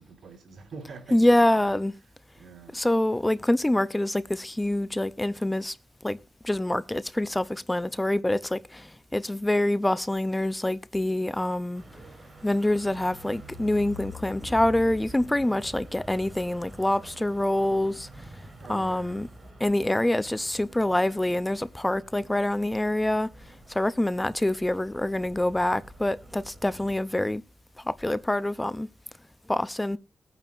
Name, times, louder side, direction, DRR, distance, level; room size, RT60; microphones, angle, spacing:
voice 1, 0.0-1.7 2.3-2.8 18.6-19.3, right 4 dB, 80° right, 4.4 m, -45 dB
voice 2, 1.1-1.9 2.7-5.8 6.0-6.2 6.4-11.8 12.4-18.1 18.7-19.3 19.6-27.4 27.9-28.9 29.5-30.0, left 1 dB, 15° left, 0.6 m, -26 dB
sound 1, 11.7-27.2, equal, 40° right, 6.8 m, -46 dB
22.0 x 9.1 x 2.6 m
cardioid pair, 65°, 0 cm